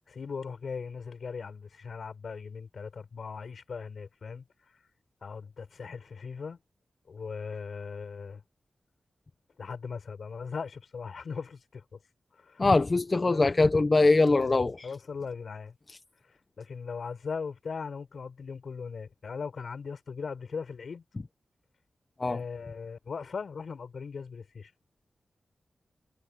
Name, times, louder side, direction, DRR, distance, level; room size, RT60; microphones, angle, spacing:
voice 1, 0.1-4.4 5.2-6.6 7.1-8.4 9.6-12.0 12.4-12.7 13.3-13.6 14.2-15.7 16.6-21.0 22.2-24.7, left 5 dB, 65° left, 5.4 m, -39 dB
voice 2, 12.6-14.9 22.2-22.4, left 3 dB, 30° left, 0.8 m, -22 dB
wide cardioid pair, 140°, 0 cm